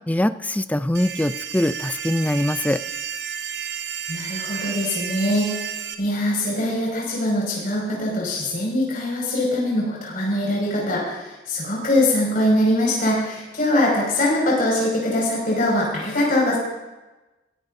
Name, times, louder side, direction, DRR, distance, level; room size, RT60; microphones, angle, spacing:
voice 1, 0.1-2.8, left 1 dB, 10° left, 12 dB, 0.4 m, -22 dB
sound 1, 0.9-5.9, right 8 dB, 85° right, 1.2 m, -32 dB
voice 2, 4.1-5.5 6.0-16.6, left 1 dB, 50° left, -4 dB, 5.7 m, -22 dB
22.5 x 15.5 x 2.7 m, 1.1 s
head